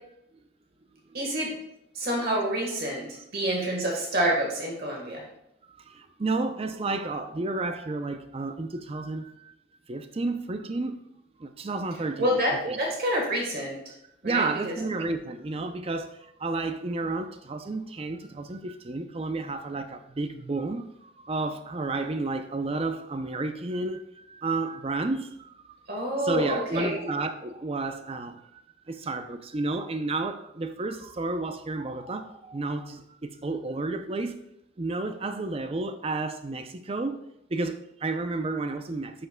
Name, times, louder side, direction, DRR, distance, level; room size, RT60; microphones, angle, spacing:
voice 1, 1.1-1.5 1.9-3.1 3.3-5.2 12.2-13.8 14.2-14.7 25.9-27.0, equal, 50° right, 1.4 m, -27 dB
voice 2, 5.7-9.5 9.9-11.0 11.4-12.8 14.2-34.4 34.8-37.2 37.5-39.3, right 3 dB, 30° right, 0.4 m, -31 dB
10.5 x 5.6 x 2.2 m
head